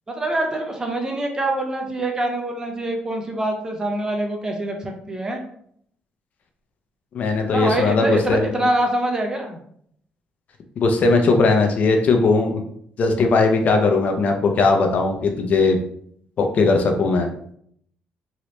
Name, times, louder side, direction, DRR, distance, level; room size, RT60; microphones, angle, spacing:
voice 1, 0.1-5.4 7.5-9.6, right 1 dB, 20° right, 2 dB, 0.6 m, -25 dB
voice 2, 7.1-8.5 10.8-12.6 13.0-15.8 16.4-17.3, left 3 dB, 50° left, 4 dB, 0.5 m, -18 dB
3.1 x 2.8 x 3.0 m, 0.66 s
cardioid pair, 140°, 3 cm